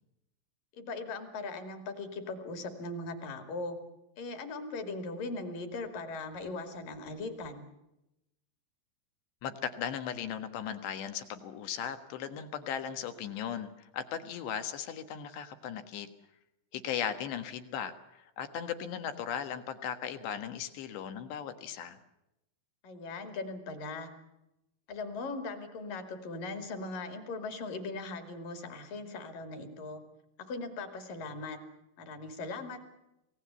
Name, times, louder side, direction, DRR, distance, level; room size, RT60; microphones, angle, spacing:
voice 1, 0.7-3.8 4.2-7.6 22.8-24.1 24.9-30.0 30.5-31.6 32.0-32.9, left 3 dB, 50° left, 7 dB, 3.6 m, -39 dB
voice 2, 9.4-16.1 16.7-22.0, left 8 dB, 70° left, 9 dB, 3.4 m, -37 dB
26.5 x 18.5 x 8.2 m, 0.89 s
omnidirectional pair, 5.7 m